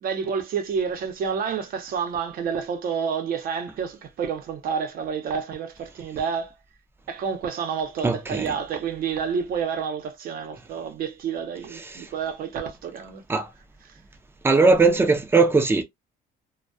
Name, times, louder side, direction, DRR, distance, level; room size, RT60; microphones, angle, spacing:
voice 1, 0.0-6.5 7.1-13.2, right 6 dB, 60° right, 0.8 m, -29 dB
voice 2, 8.0-8.5 13.3-13.5 14.4-15.8, right 3 dB, 15° right, 0.5 m, -19 dB
2.2 x 2.2 x 2.6 m
cardioid pair, 110°, 17 cm